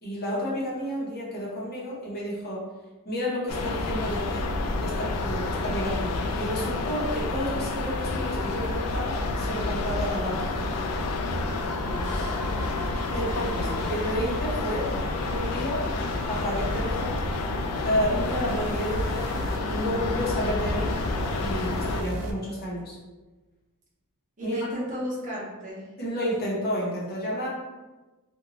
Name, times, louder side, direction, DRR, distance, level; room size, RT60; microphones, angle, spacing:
voice 1, 0.0-2.6 3.0-4.5 4.8-10.8 13.1-14.9 15.3-15.9 16.3-17.2 17.8-20.9 21.4-23.0 24.4-24.6 26.0-27.5, equal, 45° left, -5 dB, 0.8 m, -31 dB
sound 1, 3.5-22.0, left 2 dB, 80° left, 0.4 m, -29 dB
sound 2, 11.3-22.3, right 1 dB, 85° right, 0.4 m, -38 dB
voice 2, 11.8-12.4 13.3-13.8 24.4-25.8, equal, 35° right, -5 dB, 0.7 m, -35 dB
2.6 x 2.2 x 2.9 m, 1.2 s
head